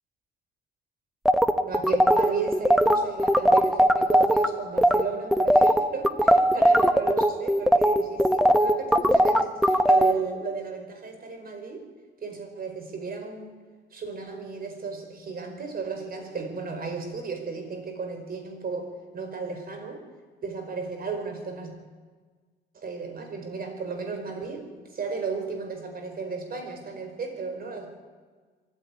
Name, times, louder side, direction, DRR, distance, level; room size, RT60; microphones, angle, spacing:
sound 1, 1.2-4.5 4.8-5.0 5.3-10.1, equal, ahead, 1.2 m, -19 dB
voice 1, 1.6-11.8 12.2-13.5 13.9-18.9 19.1-20.0 20.4-21.7 22.7-27.9, right 4 dB, 50° right, 5 dB, 4.7 m, -34 dB
23.5 x 14.5 x 9.6 m, 1.5 s
cardioid pair, 90°, 20 cm